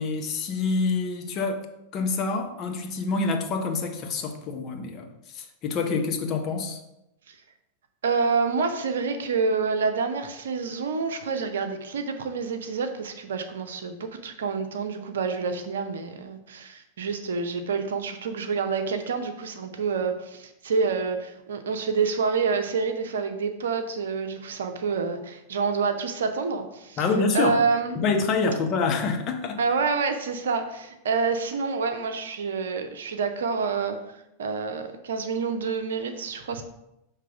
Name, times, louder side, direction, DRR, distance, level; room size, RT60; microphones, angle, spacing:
voice 1, 0.0-1.6 1.9-5.1 5.3-6.8 27.0-27.6 27.9-29.6, left 4 dB, 35° left, 3 dB, 1.0 m, -26 dB
voice 2, 8.0-27.0 27.3-28.0 29.6-34.0 34.4-36.6, right 5 dB, 65° right, 7 dB, 0.7 m, -27 dB
6.1 x 3.3 x 5.8 m, 0.86 s
figure-of-eight pair, 90°, 0 cm